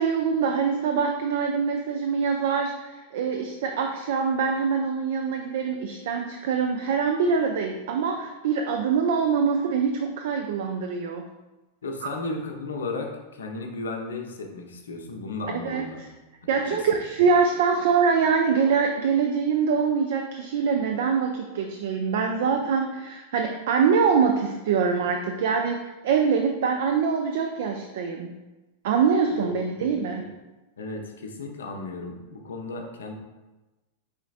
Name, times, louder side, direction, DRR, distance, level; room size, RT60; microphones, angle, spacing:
voice 1, 0.0-11.3 12.0-12.1 15.6-16.1 16.5-28.3 28.8-30.3, right 6 dB, 55° right, 4 dB, 0.4 m, -24 dB
voice 2, 11.8-16.0 16.7-16.8 29.4-30.0 30.8-33.1, left 3 dB, 65° left, 3 dB, 0.6 m, -34 dB
5.0 x 3.9 x 2.5 m, 1.1 s
figure-of-eight pair, 90°, 0 cm